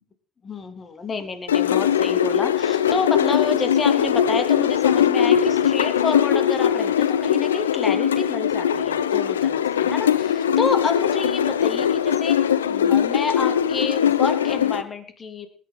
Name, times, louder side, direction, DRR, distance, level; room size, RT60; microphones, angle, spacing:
voice 1, 0.4-15.5, left 4 dB, 35° left, 7 dB, 2.9 m, -29 dB
sound 1, 1.5-14.8, left 9 dB, 85° left, 0.7 m, -20 dB
20.0 x 11.0 x 4.0 m, 0.43 s
hypercardioid pair, 60°, 0 cm